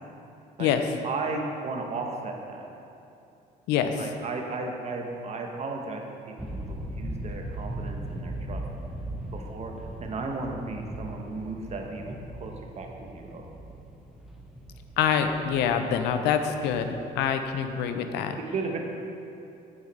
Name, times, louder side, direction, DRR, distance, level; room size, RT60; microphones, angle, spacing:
voice 1, 1.0-2.7 4.0-8.6 9.3-9.7 10.0-13.5 18.5-18.8, right 3 dB, 40° right, 2 dB, 1.0 m, -35 dB
voice 2, 3.7-4.0 15.0-16.9 17.2-18.4, left 8 dB, 90° left, 7 dB, 0.5 m, -25 dB
sound 1, 6.4-17.9, right 1 dB, ahead, 0.7 m, -39 dB
8.6 x 4.8 x 4.1 m, 2.7 s
cardioid pair, 110°, 17 cm